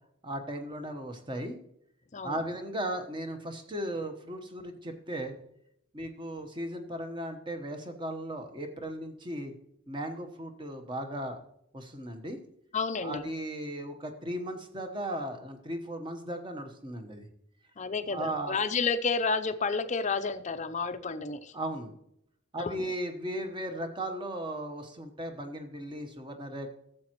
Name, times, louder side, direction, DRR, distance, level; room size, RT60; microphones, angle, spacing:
voice 1, 0.2-1.6 2.2-5.3 5.9-9.5 9.9-11.4 11.7-12.4 13.0-17.3 18.1-18.6 21.5-22.0 22.5-26.7, right 1 dB, 20° right, 6 dB, 1.1 m, -36 dB
voice 2, 12.7-13.3 17.8-21.5 22.6-22.9, left 4 dB, 35° left, 10 dB, 0.5 m, -31 dB
13.5 x 7.6 x 3.0 m, 0.75 s
head